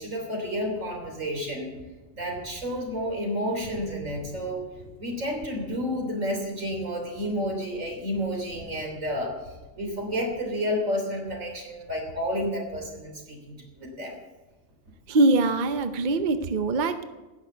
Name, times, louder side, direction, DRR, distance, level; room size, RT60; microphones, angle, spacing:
voice 1, 0.0-1.8 2.1-9.3 9.8-14.2, equal, 90° right, 1 dB, 3.7 m, -30 dB
voice 2, 15.1-17.0, right 2 dB, 45° right, 9 dB, 0.8 m, -23 dB
16.5 x 6.5 x 9.0 m, 1.1 s
omnidirectional pair, 1.3 m